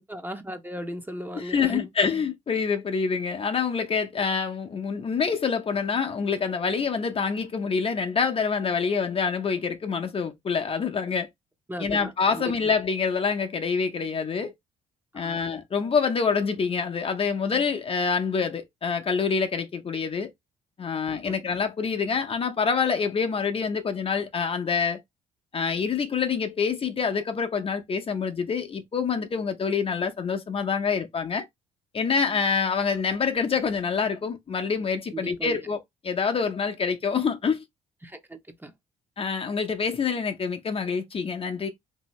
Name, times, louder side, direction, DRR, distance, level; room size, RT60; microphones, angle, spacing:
voice 1, 0.0-1.9 11.7-12.5 15.2-15.4 21.3-21.4 35.1-35.6 38.0-38.7, right 1 dB, 10° right, 0.7 m, -37 dB
voice 2, 1.3-11.3 11.8-14.5 15.1-20.3 20.8-25.0 25.5-31.4 31.9-37.6 39.2-41.7, left 5 dB, 35° left, 0.6 m, -26 dB
2.8 x 2.7 x 3.0 m
supercardioid pair, 65°, 16 cm